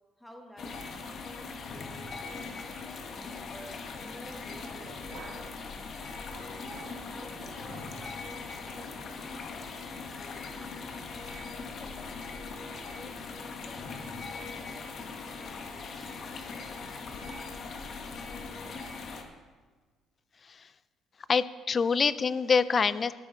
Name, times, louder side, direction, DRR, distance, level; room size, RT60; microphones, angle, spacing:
voice 1, 0.2-2.5 2.8-5.9 6.3-9.8 10.1-11.2 11.6-17.4, equal, 5° left, 2 dB, 1.6 m, -53 dB
sound 1, 0.6-19.2, left 4 dB, 50° left, 1.3 m, -40 dB
sound 2, 4.5-5.6 6.0-8.0 8.3-8.5 9.0-9.2 9.6-9.7 10.1-10.3, right 4 dB, 70° right, 1.9 m, -51 dB
voice 2, 21.3-23.1, left 5 dB, 35° left, 16 dB, 0.4 m, -25 dB
14.0 x 9.2 x 3.9 m, 1.4 s
cardioid pair, 130°, 0 cm